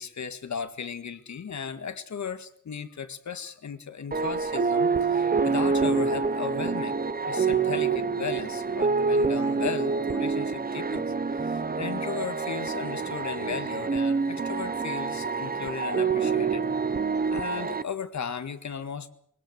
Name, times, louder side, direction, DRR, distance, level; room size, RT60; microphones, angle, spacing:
voice 1, 0.0-11.1 11.3-16.6 17.3-19.1, left 7 dB, 60° left, 11 dB, 2.0 m, -36 dB
sound 1, 4.1-17.8, right 4 dB, 30° right, 1.1 m, -27 dB
22.0 x 18.0 x 8.0 m, 0.63 s
cardioid pair, 95°, 32 cm